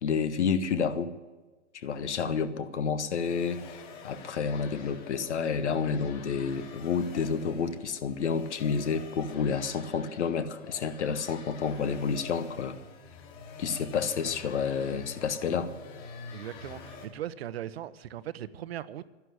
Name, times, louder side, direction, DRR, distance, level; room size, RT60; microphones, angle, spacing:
voice 1, 0.0-1.1 1.7-12.8 13.6-15.7, left 6 dB, 70° left, 12 dB, 1.4 m, -30 dB
sound 1, 3.1-17.1, left 5 dB, 40° left, 3.6 m, -47 dB
voice 2, 16.3-19.1, right 11 dB, 55° right, 15 dB, 0.9 m, -39 dB
12.0 x 11.5 x 9.5 m, 1.3 s
hypercardioid pair, 145°, 36 cm